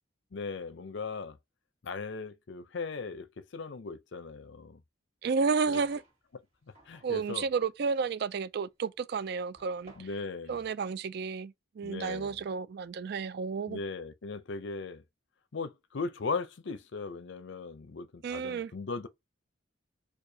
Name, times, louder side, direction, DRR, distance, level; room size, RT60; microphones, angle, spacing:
voice 1, 0.3-1.4 1.8-3.3 3.5-4.8 5.7-5.8 6.9-7.5 10.0-10.6 11.8-12.4 13.7-15.0 15.5-19.1, left 4 dB, 65° left, 0.5 m, -38 dB
voice 2, 5.2-6.0 7.0-10.1 10.5-13.8 18.2-18.7, right 5 dB, 55° right, 0.3 m, -32 dB
sound 1, 5.6-6.2 6.7-10.3, right 2 dB, 35° right, 1.8 m, -56 dB
4.6 x 2.3 x 2.7 m
head